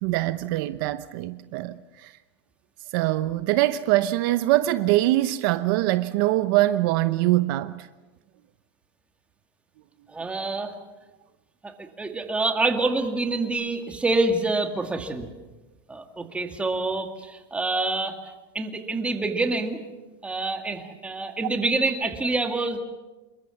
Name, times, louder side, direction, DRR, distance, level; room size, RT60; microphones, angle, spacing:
voice 1, 0.0-2.1 2.9-7.9, right 16 dB, 55° right, 12 dB, 0.8 m, -23 dB
voice 2, 10.1-10.7 11.6-15.3 15.9-18.2 18.5-19.8 20.2-22.8, right 2 dB, 10° right, 5 dB, 2.2 m, -26 dB
27.0 x 22.0 x 7.1 m, 1.2 s
supercardioid pair, 150°, 13 cm